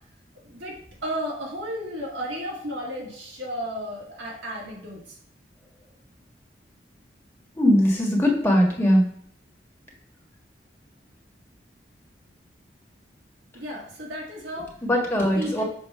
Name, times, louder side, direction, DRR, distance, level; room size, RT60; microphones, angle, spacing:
voice 1, 0.3-5.2 13.5-14.7 15.3-15.6, equal, 90° right, -3 dB, 1.9 m, -33 dB
voice 2, 7.6-9.1 14.8-15.6, equal, 15° left, -1 dB, 1.5 m, -20 dB
7.0 x 2.8 x 5.5 m, 0.64 s
head